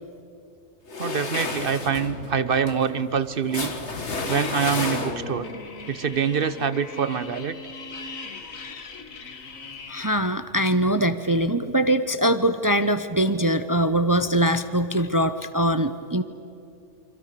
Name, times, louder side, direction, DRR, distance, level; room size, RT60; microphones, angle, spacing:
sound 1, 0.9-5.5, left 3 dB, 60° left, 2.1 m, -31 dB
voice 1, 1.0-3.7 4.3-5.5 5.9-7.6, right 6 dB, 50° right, 14 dB, 1.0 m, -25 dB
sound 2, 4.1-10.1, left 3 dB, 80° left, 2.0 m, -39 dB
voice 2, 9.9-16.2, right 1 dB, 20° right, 11 dB, 0.6 m, -22 dB
28.5 x 25.5 x 6.8 m, 2.7 s
omnidirectional pair, 1.4 m